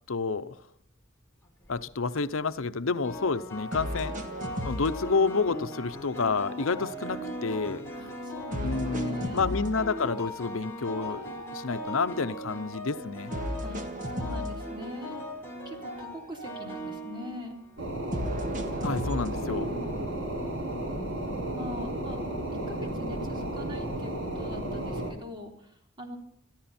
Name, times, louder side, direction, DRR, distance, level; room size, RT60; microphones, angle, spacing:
voice 1, 0.1-0.6 1.7-4.1 4.6-7.8 8.6-13.3 18.8-19.7, left 4 dB, 75° left, 12 dB, 0.8 m, -29 dB
sound 1, 1.4-1.8 3.0-17.9, left 1 dB, 10° left, 3.7 m, -40 dB
sound 2, 3.7-5.7 6.1-7.9 8.5-10.5 10.9-12.7 13.3-15.5 15.7-17.5 18.1-20.1, right 1 dB, 40° right, 1.7 m, -37 dB
voice 2, 8.0-9.5 13.6-13.8 14.1-15.2 15.7-17.6 19.4-20.0 21.5-22.3 22.7-26.2, left 1 dB, 25° right, 2 dB, 3.7 m, -42 dB
sound 3, 17.8-25.1, right 1 dB, 80° right, 5.4 m, -33 dB
22.0 x 14.0 x 4.3 m, 0.70 s
head